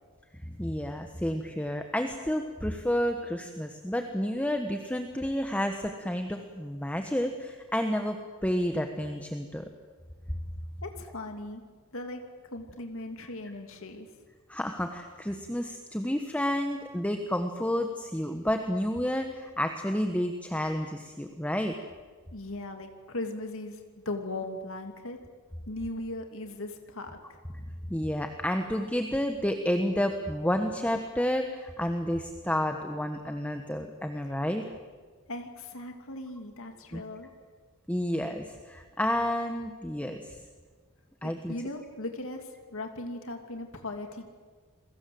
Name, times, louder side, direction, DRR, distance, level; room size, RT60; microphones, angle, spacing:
voice 1, 0.4-9.6 14.5-21.7 27.9-34.6 36.9-37.0 37.9-40.4 41.2-41.5, equal, 5° left, 5 dB, 1.4 m, -30 dB
voice 2, 10.8-11.6 11.9-12.2 12.5-14.1 22.3-23.8 24.0-25.2 25.7-27.2 35.3-37.3 41.2-44.3, left 2 dB, 65° left, 5 dB, 2.7 m, -38 dB
29.5 x 22.5 x 7.9 m, 1.5 s
head